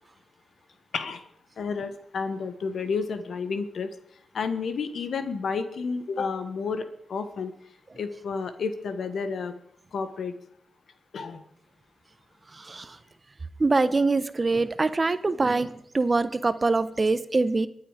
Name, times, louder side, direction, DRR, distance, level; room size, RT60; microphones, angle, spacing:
voice 1, 1.6-3.9 4.3-7.5 7.9-9.5 9.9-10.3 11.1-11.4, left 5 dB, 75° left, 10 dB, 1.5 m, -31 dB
voice 2, 12.6-12.9 13.6-17.7, right 3 dB, 40° right, 13 dB, 1.0 m, -24 dB
22.5 x 8.9 x 5.1 m, 0.71 s
cardioid pair, 50°, 0 cm